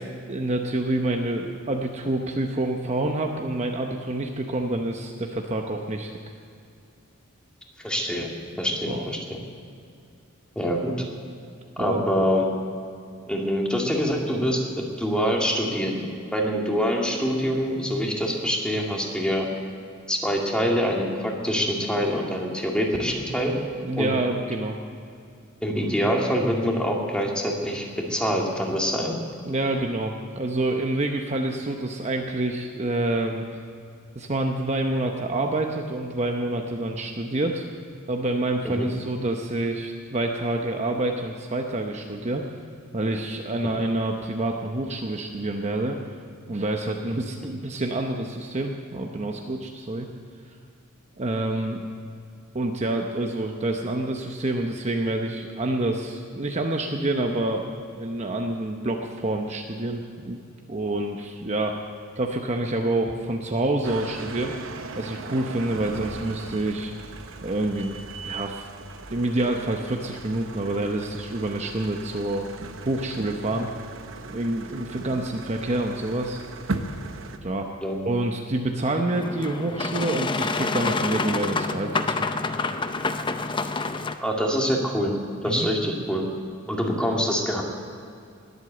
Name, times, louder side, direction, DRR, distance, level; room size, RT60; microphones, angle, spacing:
voice 1, 0.3-6.2 8.9-9.0 11.8-12.1 23.8-24.8 29.4-33.4 34.1-37.6 38.1-42.4 42.9-46.0 46.5-50.1 51.2-51.8 52.5-57.7 58.0-60.4 60.7-61.9 62.2-64.5 65.0-66.9 67.4-68.7 69.1-72.5 72.9-73.7 74.3-76.4 77.4-77.7 78.0-82.3 85.4-85.7, right 2 dB, 35° right, 2 dB, 0.8 m, -27 dB
voice 2, 7.8-8.3 8.6-9.2 10.6-10.9 11.8-12.4 13.3-16.0 16.3-19.5 20.1-23.5 24.0-24.1 25.6-29.2 38.6-38.9 74.9-75.1 77.8-78.0 84.2-85.1 85.4-86.2 86.7-87.6, equal, 5° left, -1 dB, 2.1 m, -25 dB
sound 1, 63.8-77.4, right 3 dB, 65° right, 0.9 m, -38 dB
Boat Water vehicle, 79.1-84.1, left 3 dB, 25° left, 0.6 m, -27 dB
20.5 x 8.2 x 7.8 m, 2.4 s
head